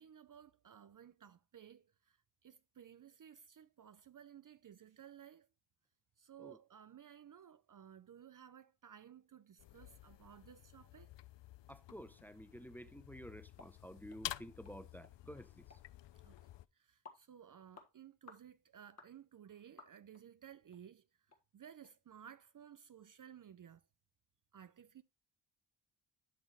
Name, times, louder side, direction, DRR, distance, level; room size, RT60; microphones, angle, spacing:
voice 1, 0.0-5.5 6.2-11.1 16.2-16.4 16.7-21.0 21.5-23.8 24.5-25.0, right 9 dB, 45° right, 0.5 m, -57 dB
sound 1, 9.6-16.7, left 14 dB, 70° left, 0.5 m, -51 dB
voice 2, 11.7-15.7, equal, 5° left, 0.7 m, -52 dB
sound 2, 13.6-13.7 14.1-14.2 14.7-14.8 15.0-15.2 15.7-15.8 16.4-16.5 17.1-17.2 17.7-17.9 18.3-18.5 19.0-19.1 19.8-20.2 20.7-20.8 21.3-21.4 21.8-21.9, left 4 dB, 35° left, 1.5 m, -57 dB
11.0 x 6.1 x 3.0 m
wide cardioid pair, 120°, 46 cm